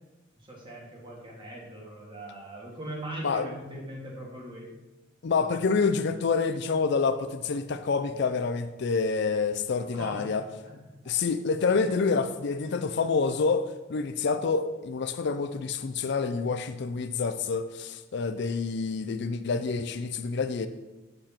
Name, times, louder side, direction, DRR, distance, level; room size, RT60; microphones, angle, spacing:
voice 1, 0.4-4.7 9.9-10.4 11.0-11.2, right 1 dB, 25° right, -3 dB, 2.1 m, -40 dB
voice 2, 5.2-10.4 11.1-20.7, left 4 dB, 60° left, 10 dB, 0.4 m, -27 dB
7.8 x 6.6 x 4.4 m, 1.1 s
head